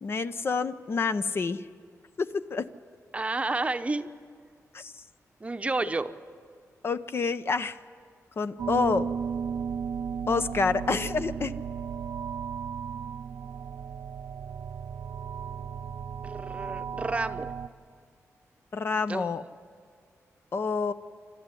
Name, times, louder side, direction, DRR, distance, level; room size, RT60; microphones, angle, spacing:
voice 1, 0.0-1.7 2.2-2.7 4.7-5.0 6.8-7.8 8.4-9.1 10.3-11.5 18.7-19.4 20.5-20.9, left 4 dB, 45° left, 11 dB, 0.6 m, -28 dB
voice 2, 3.1-4.1 5.4-6.2 16.2-17.5 19.1-19.4, right 3 dB, 25° right, 9 dB, 0.8 m, -30 dB
sound 1, 8.6-17.7, right 7 dB, 90° right, 0.7 m, -35 dB
27.5 x 13.0 x 9.8 m, 2.1 s
wide cardioid pair, 110°, 6 cm